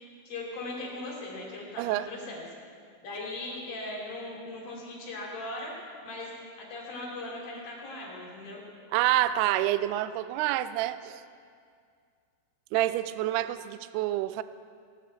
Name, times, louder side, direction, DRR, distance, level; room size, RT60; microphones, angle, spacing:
voice 1, 0.3-2.4 3.0-5.7 6.0-6.3 6.6-8.6, left 2 dB, 55° left, -3 dB, 4.6 m, -39 dB
voice 2, 1.8-2.1 8.9-11.2 12.7-14.4, right 14 dB, 80° right, 13 dB, 2.4 m, -27 dB
18.5 x 18.0 x 4.1 m, 2.2 s
omnidirectional pair, 4.9 m